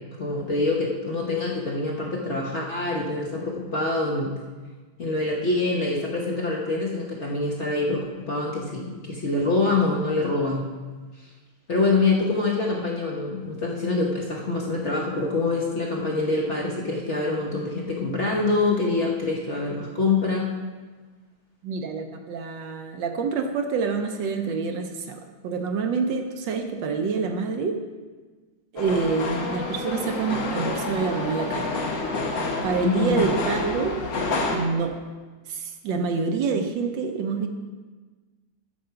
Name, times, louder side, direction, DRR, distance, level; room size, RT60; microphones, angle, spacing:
voice 1, 0.2-4.3 5.0-8.0 8.3-10.6 11.2-11.3 11.7-20.5 32.8-33.1, left 3 dB, 45° left, -2 dB, 1.0 m, -25 dB
voice 2, 21.6-27.8 28.7-31.7 32.6-34.0 34.5-34.9 35.5-37.5, right 5 dB, 70° right, 5 dB, 1.4 m, -27 dB
sound 1, 28.8-34.6, left 3 dB, 65° left, 1.8 m, -28 dB
7.7 x 7.1 x 5.7 m, 1.3 s
omnidirectional pair, 2.2 m